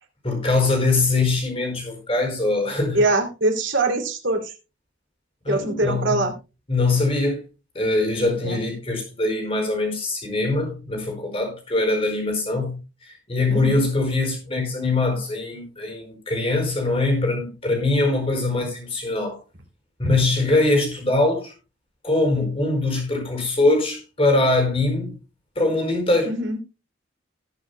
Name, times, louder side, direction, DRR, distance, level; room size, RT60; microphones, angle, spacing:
voice 1, 0.2-3.0 5.4-6.3 6.7-7.4 7.7-12.8 13.1-19.4 20.0-21.5 22.0-25.2 25.5-26.4, left 2 dB, 30° left, 4.7 m, -22 dB
voice 2, 2.9-4.5 5.5-6.3 8.4-8.6 13.5-13.8 26.2-26.6, right 2 dB, 80° right, 2.9 m, -23 dB
19.5 x 7.3 x 2.3 m
head